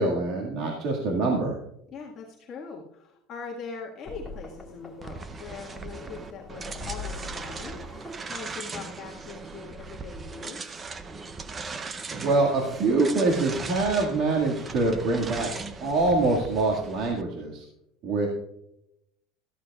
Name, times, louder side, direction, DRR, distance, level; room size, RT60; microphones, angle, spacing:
voice 1, 0.0-1.6 12.1-15.5 15.8-17.6 18.0-18.3, right 3 dB, 45° right, -2 dB, 2.0 m, -24 dB
voice 2, 1.9-10.8, left 5 dB, 35° left, -3 dB, 1.8 m, -41 dB
sound 1, 4.1-9.1, left 3 dB, 5° left, 1.9 m, -43 dB
sound 2, 5.0-17.2, right 4 dB, 20° right, 0.6 m, -39 dB
14.0 x 13.5 x 2.4 m, 0.81 s
cardioid pair, 155°, 0 cm